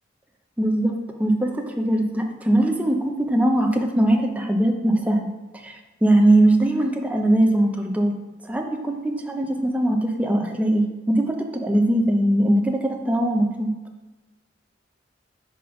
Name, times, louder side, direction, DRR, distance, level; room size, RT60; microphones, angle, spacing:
voice 1, 0.6-8.1 8.4-13.7, right 1 dB, 10° right, 3 dB, 0.5 m, -21 dB
5.1 x 4.0 x 5.6 m, 1.1 s
head